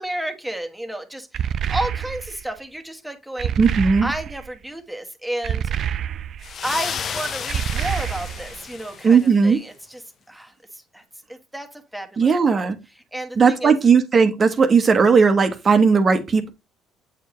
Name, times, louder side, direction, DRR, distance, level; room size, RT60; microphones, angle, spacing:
voice 1, 0.0-3.5 4.0-5.7 6.6-10.0 10.3-11.0 11.3-12.7 13.0-13.7, right 1 dB, 5° right, 1.4 m, -32 dB
sound 1, 1.3-2.4 3.4-4.5 5.4-6.5 7.5-8.6, right 9 dB, 55° right, 0.4 m, -27 dB
voice 2, 3.6-4.1 9.0-9.6 12.2-12.8 13.4-16.5, right 5 dB, 40° right, 1.1 m, -16 dB
sound 2, 6.4-9.4, left 7 dB, 50° left, 0.7 m, -32 dB
8.0 x 4.6 x 3.1 m
supercardioid pair, 80°, 0 cm